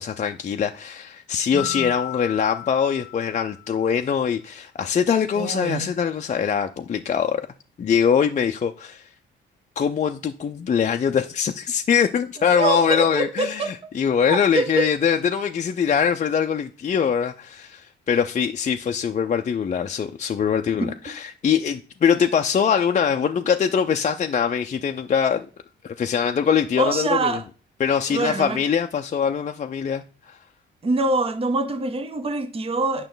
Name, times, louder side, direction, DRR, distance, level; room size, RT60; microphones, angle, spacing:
voice 1, 0.0-7.4 7.8-9.1 9.8-25.5 25.8-27.4 27.8-30.4, left 7 dB, 40° left, 0.5 m, -23 dB
voice 2, 1.5-1.9 5.4-5.9 12.5-13.9 14.3-14.9 20.8-20.9 26.8-27.4 28.1-28.6 30.8-33.1, right 3 dB, 30° right, 0.9 m, -25 dB
Mallet percussion, 1.6-3.9, left 21 dB, 75° left, 0.7 m, -35 dB
9.0 x 5.9 x 3.9 m
cardioid pair, 90°, 20 cm